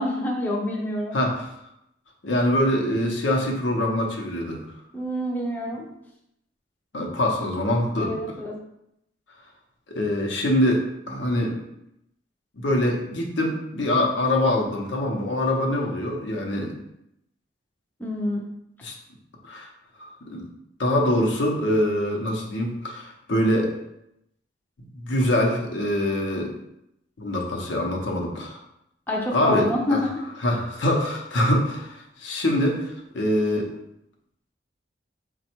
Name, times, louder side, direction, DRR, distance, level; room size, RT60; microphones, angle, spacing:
voice 1, 0.0-1.2 4.9-5.9 8.0-8.6 18.0-18.4 29.1-30.2, left 1 dB, 10° left, -2 dB, 0.5 m, -27 dB
voice 2, 1.1-1.5 2.2-4.7 6.9-8.1 9.9-11.6 12.6-16.7 18.8-18.9 19.4-19.7 20.0-20.5 20.8-23.7 25.0-26.5 27.2-28.6 29.3-30.0 30.4-33.7, left 1 dB, 80° left, 1 dB, 0.7 m, -24 dB
4.1 x 2.2 x 4.4 m, 0.81 s
head